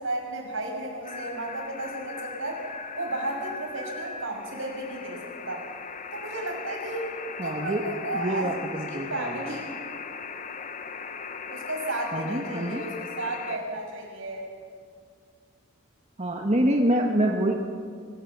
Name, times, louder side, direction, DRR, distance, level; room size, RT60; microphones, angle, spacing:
voice 1, 0.0-2.7 3.0-5.7 6.1-7.1 7.4-8.5 8.9-9.7 11.5-14.5, right 1 dB, 70° right, 1 dB, 5.9 m, -33 dB
sound 1, 1.0-13.6, left 5 dB, 35° left, 1.0 m, -39 dB
voice 2, 7.4-7.9 8.1-9.3 12.1-12.9 16.2-17.6, right 1 dB, 30° right, 1 dB, 1.4 m, -26 dB
25.0 x 17.0 x 8.2 m, 2.1 s
head